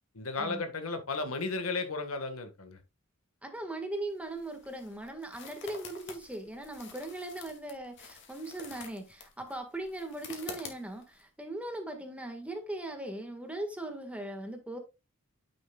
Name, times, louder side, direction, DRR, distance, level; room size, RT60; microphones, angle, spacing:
voice 1, 0.1-2.8, left 3 dB, 85° left, 1.6 m, -34 dB
voice 2, 3.4-14.8, right 1 dB, 5° right, 1.6 m, -39 dB
sound 1, 4.0-11.2, left 5 dB, 60° left, 2.3 m, -49 dB
9.3 x 7.5 x 2.4 m
head